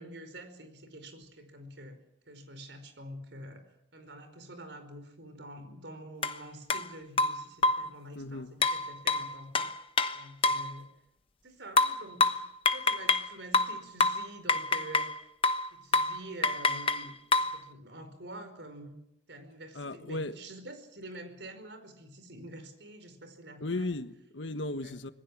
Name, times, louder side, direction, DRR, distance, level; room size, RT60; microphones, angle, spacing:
voice 1, 0.0-2.0 2.3-3.6 3.9-9.7 10.1-10.9 11.4-12.4 12.7-15.3 15.7-19.0 19.3-23.9 24.8-25.0, right 1 dB, 70° right, 4.9 m, -47 dB
sound 1, 6.2-6.4 6.7-6.8 7.2-7.9 8.6-10.7 11.8-13.3 13.5-15.2 15.4-15.7 15.9-16.2 16.4-17.6, left 3 dB, 30° left, 1.0 m, -27 dB
voice 2, 8.1-8.5 19.7-20.4 23.6-25.1, left 2 dB, 85° left, 1.4 m, -35 dB
26.0 x 20.5 x 7.4 m
head